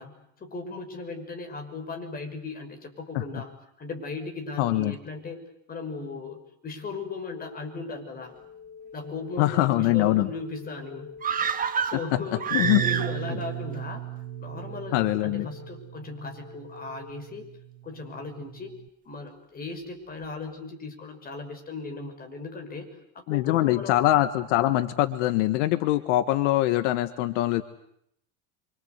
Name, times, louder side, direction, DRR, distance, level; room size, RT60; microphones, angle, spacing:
voice 1, 0.0-3.5 3.8-5.4 5.7-8.3 8.9-11.2 11.8-12.5 12.8-14.0 14.4-17.5 17.8-18.8 19.0-24.0, left 3 dB, 25° left, 4 dB, 6.0 m, -37 dB
voice 2, 4.6-4.9 9.4-10.3 12.5-12.8 14.9-15.5 23.3-27.6, left 15 dB, 75° left, 11 dB, 1.6 m, -23 dB
sound 1, 7.3-17.1, left 5 dB, 60° left, 4.5 m, -47 dB
sound 2, 11.2-13.4 13.7-13.8, right 6 dB, 25° right, 1.7 m, -28 dB
Bass guitar, 12.6-18.9, right 15 dB, 75° right, 1.0 m, -37 dB
28.5 x 25.0 x 8.2 m, 0.73 s
supercardioid pair, 140°, 36 cm